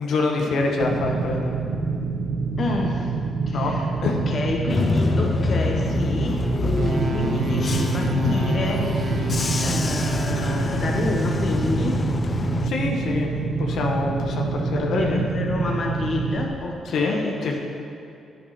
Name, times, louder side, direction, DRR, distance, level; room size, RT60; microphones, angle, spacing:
voice 1, 0.0-1.6 3.5-3.7 4.0-4.1 12.6-13.3 13.6-15.2 16.9-17.6, left 3 dB, 75° left, 0 dB, 1.6 m, -25 dB
sound 1, 0.8-16.5, right 4 dB, 75° right, 1.4 m, -27 dB
voice 2, 2.6-3.2 3.5-9.3 9.6-12.1 14.7-17.6, left 2 dB, 50° left, 1 dB, 1.5 m, -29 dB
Bus / Engine, 4.7-12.7, left 4 dB, 35° left, 0.4 m, -26 dB
sound 2, 6.7-11.2, right 5 dB, 55° right, 1.1 m, -31 dB
10.5 x 9.9 x 6.0 m, 2.7 s
cardioid pair, 85°, 0 cm